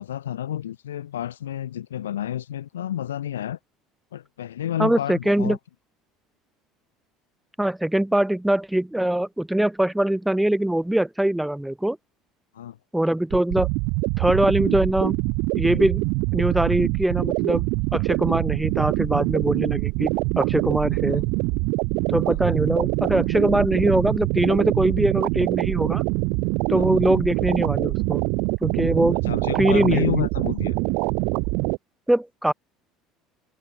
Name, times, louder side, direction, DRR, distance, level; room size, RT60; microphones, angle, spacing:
voice 1, 0.0-3.6 4.1-5.6 12.5-12.8 21.1-21.2 26.7-27.0 29.2-30.8, left 11 dB, 90° left, 2.7 m, -30 dB
voice 2, 4.8-5.6 7.6-12.0 12.9-13.7 14.2-15.2 15.5-16.0 16.3-17.7 17.9-20.1 20.4-21.2 22.1-26.0 26.7-28.2 28.6-29.2 29.6-30.3 32.1-32.5, right 1 dB, 5° right, 0.4 m, -22 dB
sound 1, 13.3-31.8, right 30 dB, 70° right, 0.4 m, -24 dB
open air
hypercardioid pair, 75°, 0 cm